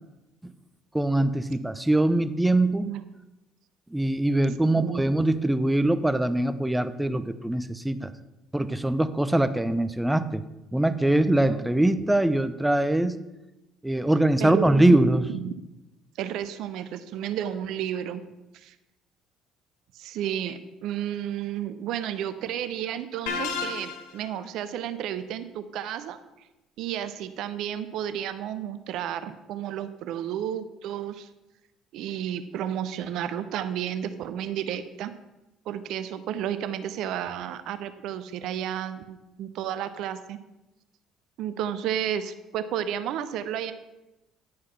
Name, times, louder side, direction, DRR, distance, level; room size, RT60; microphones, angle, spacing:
voice 1, 0.9-2.9 3.9-8.1 8.5-10.4 10.7-13.2 13.8-15.3, right 1 dB, 10° right, 12 dB, 0.6 m, -23 dB
voice 2, 4.7-5.1 14.4-15.6 16.2-18.2 18.5-18.7 19.9-26.2 26.8-31.3 31.9-35.1 35.7-40.4 41.4-43.7, right 10 dB, 65° right, 12 dB, 0.6 m, -32 dB
sound 1, 23.3-24.3, left 5 dB, 80° left, 0.8 m, -31 dB
10.0 x 4.7 x 5.7 m, 0.99 s
hypercardioid pair, 60°, 0 cm